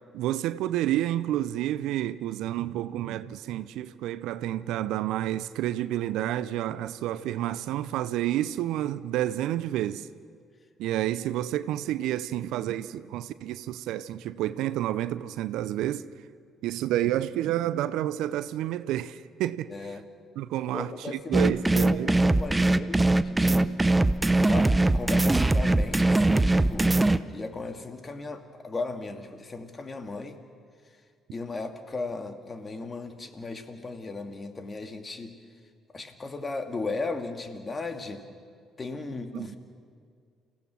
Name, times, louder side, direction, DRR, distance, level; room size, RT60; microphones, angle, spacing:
voice 1, 0.1-10.1 10.8-16.1 16.6-19.7 20.4-22.1 39.3-39.5, right 13 dB, 70° right, 0.6 m, -29 dB
voice 2, 19.7-20.0 20.7-23.8 24.3-30.4 31.3-35.4 35.9-38.3 38.8-39.6, left 3 dB, 35° left, 2.2 m, -36 dB
sound 1, 21.3-27.2, right 2 dB, 15° right, 0.8 m, -21 dB
29.0 x 16.0 x 6.2 m
hypercardioid pair, 50°, 0 cm